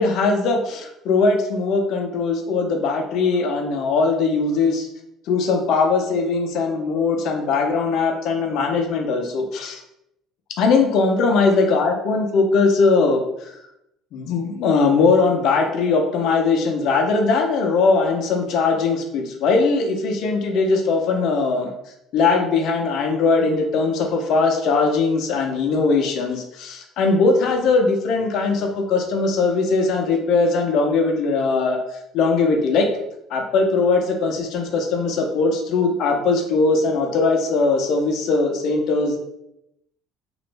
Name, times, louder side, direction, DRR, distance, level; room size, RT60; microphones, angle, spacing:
voice 1, 0.0-4.9 5.3-9.8 10.6-13.5 14.1-21.7 22.1-31.8 32.1-32.9 33.3-39.2, left 4 dB, 65° left, 3 dB, 0.6 m, -20 dB
3.0 x 2.5 x 3.2 m, 0.81 s
supercardioid pair, 85°, 0 cm